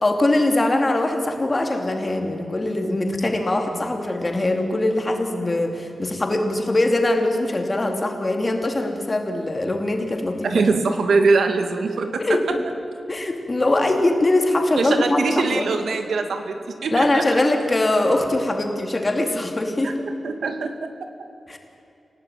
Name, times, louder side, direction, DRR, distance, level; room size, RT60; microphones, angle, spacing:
voice 1, 0.0-10.5 12.2-12.6 13.1-15.7 16.9-20.0 21.5-21.6, left 2 dB, 25° left, 4 dB, 2.8 m, -22 dB
voice 2, 10.4-12.6 14.8-17.2 19.8-19.9 20.2-20.9, right 4 dB, 90° right, 6 dB, 2.5 m, -22 dB
28.0 x 17.5 x 9.2 m, 2.8 s
wide cardioid pair, 180°, 0 cm